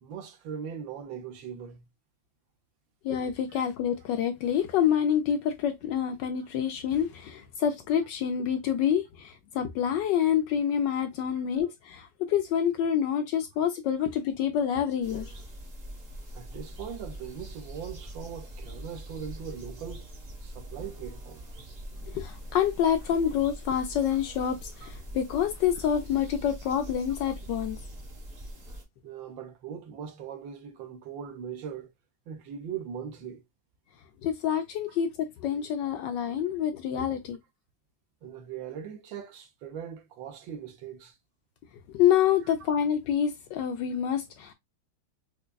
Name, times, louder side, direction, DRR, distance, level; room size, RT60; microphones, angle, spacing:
voice 1, 0.0-1.8 11.3-11.4 16.3-20.0 20.4-21.4 24.8-24.9 29.0-31.9 32.3-33.4 34.9-35.0 38.2-41.2 42.5-42.6, right 8 dB, 70° right, 1.4 m, -40 dB
voice 2, 3.0-15.3 22.1-27.8 34.2-35.1 35.4-37.4 41.9-44.5, left 9 dB, 75° left, 1.1 m, -27 dB
sound 1, 15.0-28.8, right 1 dB, 30° right, 0.8 m, -43 dB
5.1 x 2.2 x 2.2 m
omnidirectional pair, 2.2 m